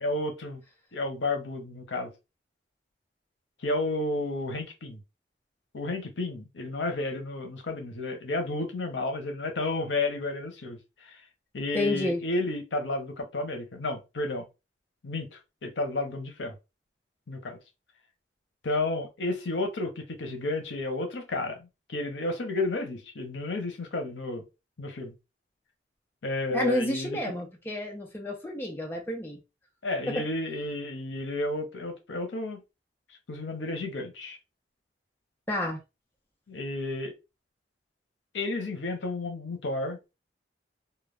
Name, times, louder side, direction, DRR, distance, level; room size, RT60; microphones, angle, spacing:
voice 1, 0.0-0.6 0.9-2.1 3.6-5.0 5.7-11.2 11.5-14.5 15.0-16.5 17.3-17.6 18.6-24.4 24.8-25.1 26.2-27.2 29.8-32.6 33.3-34.4 36.5-37.1 38.3-40.1, left 2 dB, 85° left, 0.7 m, -32 dB
voice 2, 11.7-12.2 26.5-29.4 30.1-30.3 35.5-35.8, left 1 dB, 10° left, 0.6 m, -30 dB
2.2 x 2.2 x 3.3 m
head